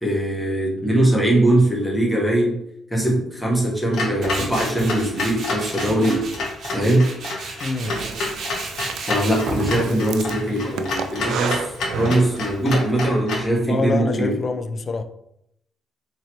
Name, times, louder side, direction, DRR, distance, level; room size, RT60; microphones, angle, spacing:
voice 1, 0.0-2.6 2.9-6.2 6.7-7.1 9.1-14.3, right 1 dB, 5° left, -3 dB, 1.3 m, -21 dB
Clock, 3.9-13.5, left 3 dB, 75° left, 0.9 m, -29 dB
Tools, 4.2-13.1, right 2 dB, 60° right, 0.8 m, -34 dB
voice 2, 7.6-8.0 13.7-15.0, left 3 dB, 45° left, 9 dB, 0.4 m, -25 dB
Breathing, 7.8-12.8, right 7 dB, 80° right, 0.3 m, -32 dB
3.9 x 3.0 x 3.0 m, 0.76 s
cardioid pair, 90°, 0 cm